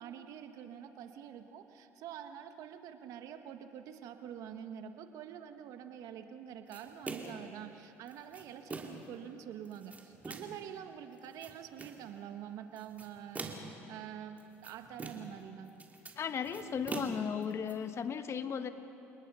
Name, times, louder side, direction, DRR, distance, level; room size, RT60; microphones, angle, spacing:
voice 1, 0.0-15.7, right 9 dB, 70° right, 7 dB, 1.5 m, -46 dB
sound 1, 6.7-7.5 8.1-9.1 9.7-10.6 11.2-12.0 12.8-13.8 14.4-15.4 15.7-17.7, right 3 dB, 25° right, 3.0 m, -44 dB
voice 2, 16.2-18.7, left 7 dB, 45° left, 9 dB, 1.3 m, -36 dB
29.5 x 19.0 x 5.7 m, 2.9 s
supercardioid pair, 75°, 6 cm